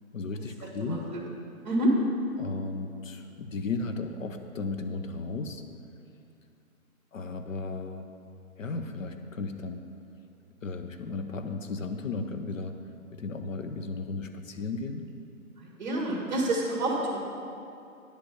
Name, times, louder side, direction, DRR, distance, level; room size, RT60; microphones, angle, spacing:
voice 1, 0.1-1.0 2.4-5.6 7.1-8.1 8.6-9.9 10.6-12.8 13.1-15.0, left 3 dB, 65° left, 7 dB, 0.7 m, -35 dB
voice 2, 0.8-1.2 1.6-1.9 15.8-17.2, right 1 dB, 30° right, -1 dB, 1.7 m, -27 dB
10.0 x 5.2 x 6.2 m, 2.6 s
hypercardioid pair, 175°, 43 cm